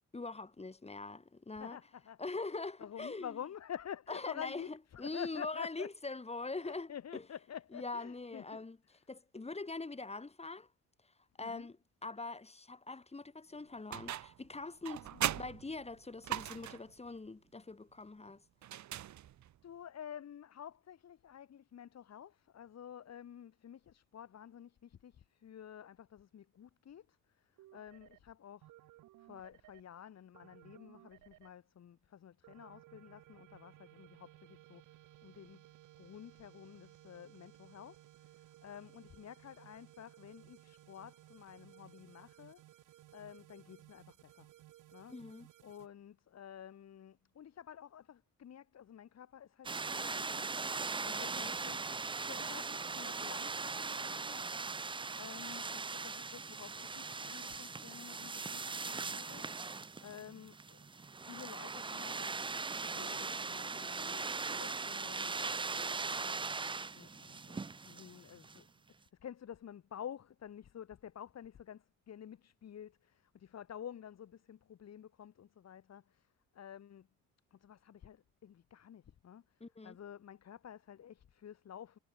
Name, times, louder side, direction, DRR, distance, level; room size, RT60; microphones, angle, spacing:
voice 1, 0.1-1.8 2.2-3.4 4.1-7.3 7.7-8.8 9.1-10.7 11.0-18.5 45.1-45.5 79.6-80.0, left 3 dB, 20° left, 5.4 m, -43 dB
voice 2, 1.6-2.2 2.8-5.9 6.6-8.6 11.4-11.7 15.1-15.4 19.6-28.7 29.2-35.0 35.2-35.6 36.0-42.6 43.1-44.5 44.9-45.2 45.6-54.6 55.1-66.6 66.9-68.7 69.0-77.1 77.5-82.0, left 9 dB, 60° left, 3.7 m, -50 dB
sound 1, 13.9-14.5 14.8-16.9 18.6-19.6, right 12 dB, 70° right, 1.8 m, -39 dB
sound 2, 27.6-28.2 28.6-29.8 30.3-31.5 32.4-45.9, right 16 dB, 90° right, 4.5 m, -60 dB
sound 3, 49.6-68.6, right 4 dB, 15° right, 0.5 m, -40 dB
cardioid pair, 90°, 30 cm